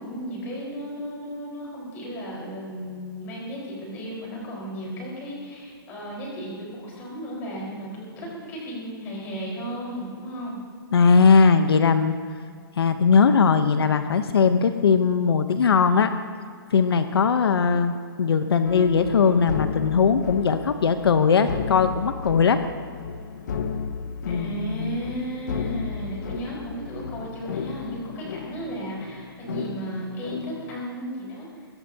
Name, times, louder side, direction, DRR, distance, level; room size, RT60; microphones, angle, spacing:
voice 1, 0.0-10.6 24.3-31.5, right 1 dB, 15° left, -4 dB, 4.7 m, -34 dB
voice 2, 10.9-12.1 12.8-16.1 16.7-22.6 24.3-25.0, left 5 dB, 85° left, 9 dB, 0.9 m, -19 dB
sound 1, 18.6-30.8, left 5 dB, 50° left, 1.0 m, -33 dB
23.0 x 16.5 x 2.9 m, 2.1 s
hypercardioid pair, 175°, 13 cm